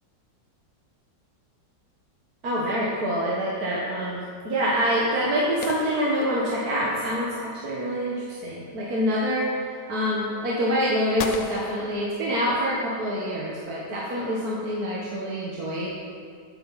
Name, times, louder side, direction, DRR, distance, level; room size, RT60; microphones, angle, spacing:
voice 1, 2.4-9.5 9.9-16.0, equal, 55° right, -5 dB, 1.9 m, -26 dB
sound 1, 5.6-7.1 11.2-12.8, left 5 dB, 60° left, 1.0 m, -37 dB
14.0 x 9.3 x 4.2 m, 2.2 s
omnidirectional pair, 2.0 m